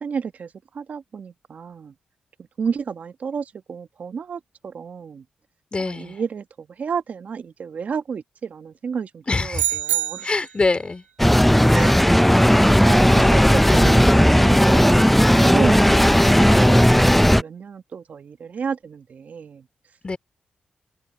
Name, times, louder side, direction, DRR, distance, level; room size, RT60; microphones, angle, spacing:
voice 1, 0.0-1.9 2.6-5.2 5.8-10.3 11.7-12.0 12.6-19.6, right 6 dB, 65° right, 1.2 m, -31 dB
voice 2, 5.7-6.2 9.3-9.8 10.2-11.0 13.2-13.3 13.6-14.0 20.0-20.2, left 3 dB, 40° left, 4.1 m, -25 dB
sound 1, 9.5-10.6, right 13 dB, 80° right, 0.4 m, -25 dB
sound 2, 11.2-17.4, equal, 5° left, 0.4 m, -15 dB
open air
supercardioid pair, 45°, 3 cm